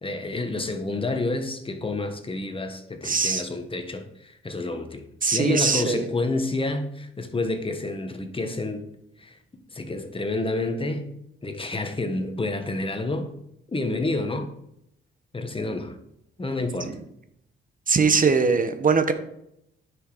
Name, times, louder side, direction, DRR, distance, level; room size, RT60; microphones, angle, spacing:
voice 1, 0.0-8.9 9.2-9.4 9.7-11.1 11.4-13.3 13.7-14.5 15.3-16.0 16.4-17.0, left 2 dB, 25° left, 7 dB, 1.5 m, -29 dB
voice 2, 3.0-3.4 5.2-6.1 17.9-19.1, right 5 dB, 40° right, 9 dB, 1.1 m, -21 dB
9.7 x 6.3 x 5.0 m, 0.78 s
cardioid pair, 75°, 21 cm